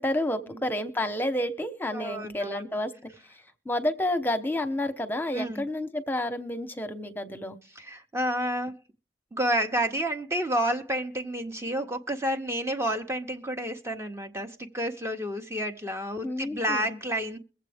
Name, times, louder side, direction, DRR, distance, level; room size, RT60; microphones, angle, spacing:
voice 1, 0.0-2.9 3.6-7.6 16.2-17.0, left 1 dB, 10° left, 9 dB, 0.9 m, -30 dB
voice 2, 1.9-2.6 5.3-5.6 7.7-8.8 9.3-17.4, right 1 dB, 15° right, 5 dB, 0.7 m, -30 dB
22.0 x 7.6 x 3.4 m, 0.38 s
head